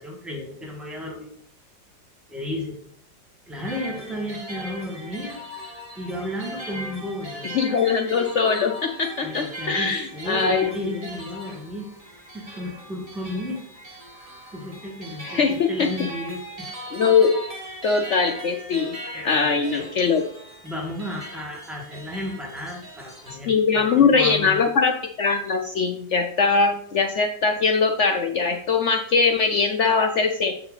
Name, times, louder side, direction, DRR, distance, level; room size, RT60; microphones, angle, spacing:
voice 1, 0.0-1.3 2.3-2.8 3.5-5.4 6.0-7.5 9.2-11.9 12.3-13.6 14.1-16.7 19.1-19.9 20.6-24.6, left 1 dB, ahead, -1 dB, 1.7 m, -33 dB
sound 1, 3.7-23.4, right 1 dB, 20° right, 1.5 m, -39 dB
voice 2, 7.5-10.7 15.2-15.9 16.9-17.3 17.8-19.0 19.2-20.2 23.5-30.5, left 5 dB, 75° left, 4 dB, 0.6 m, -21 dB
7.7 x 6.9 x 4.0 m, 0.64 s
omnidirectional pair, 2.0 m